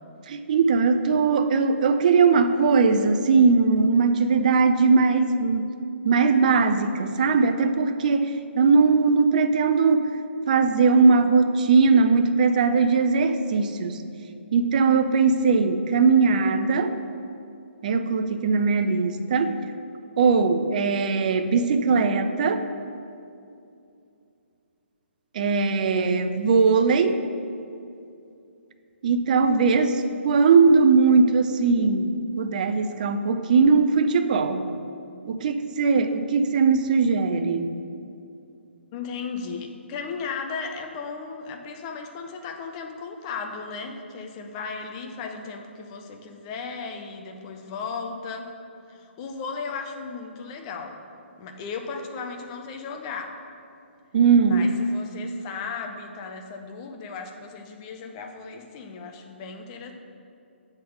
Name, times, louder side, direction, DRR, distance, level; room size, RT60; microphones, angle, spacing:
voice 1, 0.3-5.7 6.0-10.1 10.5-14.0 14.5-16.9 17.8-19.5 20.2-22.6 25.3-27.2 29.0-34.7 35.3-37.7 54.1-54.7, right 4 dB, 40° right, 8 dB, 0.4 m, -20 dB
voice 2, 38.9-48.5 48.9-51.0 51.4-53.4 54.4-59.9, left 5 dB, 25° left, 4 dB, 0.6 m, -36 dB
7.6 x 3.7 x 6.2 m, 2.6 s
figure-of-eight pair, 135°, 7 cm